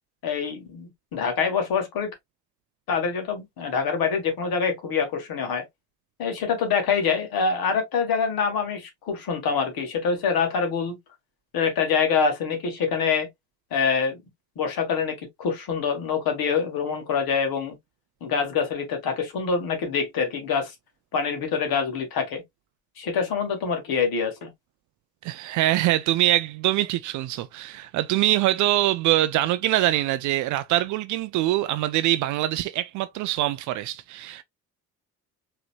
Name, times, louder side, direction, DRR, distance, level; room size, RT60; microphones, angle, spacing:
voice 1, 0.2-2.1 2.9-5.6 6.2-11.0 11.5-13.3 13.7-14.2 14.6-17.8 18.2-20.7 21.1-22.4 23.0-24.5, left 6 dB, 45° left, 1.7 m, -25 dB
voice 2, 25.2-34.4, right 15 dB, 40° right, 0.4 m, -24 dB
4.8 x 3.0 x 2.4 m
figure-of-eight pair, 55°, 48 cm